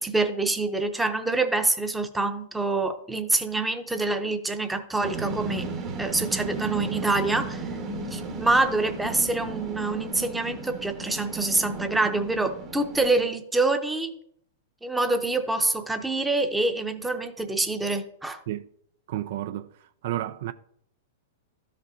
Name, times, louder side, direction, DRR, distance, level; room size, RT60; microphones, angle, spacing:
voice 1, 0.0-5.7 6.0-7.6 8.1-14.1 14.8-18.4, right 2 dB, 5° right, 0.7 m, -26 dB
sound 1, 5.0-13.1, right 3 dB, 30° right, 1.1 m, -35 dB
voice 2, 19.1-20.5, right 13 dB, 65° right, 0.3 m, -32 dB
13.0 x 5.2 x 2.7 m
hypercardioid pair, 135°, 0 cm